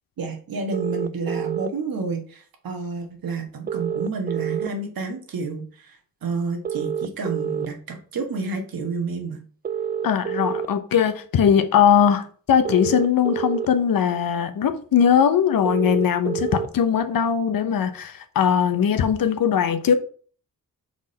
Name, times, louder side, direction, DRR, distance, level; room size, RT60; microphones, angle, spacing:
voice 1, 0.2-9.4, right 4 dB, 75° right, 1.6 m, -30 dB
sound 1, 0.7-1.7 3.7-4.7 6.6-7.7 9.6-10.7 12.6-13.7 15.6-16.7, right 7 dB, 30° right, 0.4 m, -27 dB
voice 2, 10.0-19.9, left 8 dB, 75° left, 0.9 m, -20 dB
4.7 x 4.0 x 5.4 m
cardioid pair, 70°, 35 cm